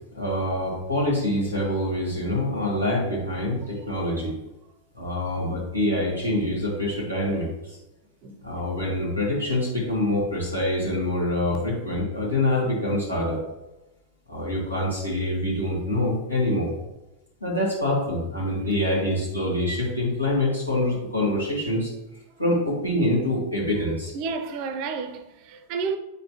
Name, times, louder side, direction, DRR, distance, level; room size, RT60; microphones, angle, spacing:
voice 1, 0.1-4.3 4.9-7.5 8.4-13.4 14.3-16.7 17.4-21.9 22.4-24.1, left 1 dB, 85° left, 2.1 m, -25 dB
voice 2, 8.2-8.7 24.1-26.0, right 5 dB, 45° right, 0.5 m, -31 dB
8.9 x 4.1 x 3.0 m
figure-of-eight pair, 90°, 0 cm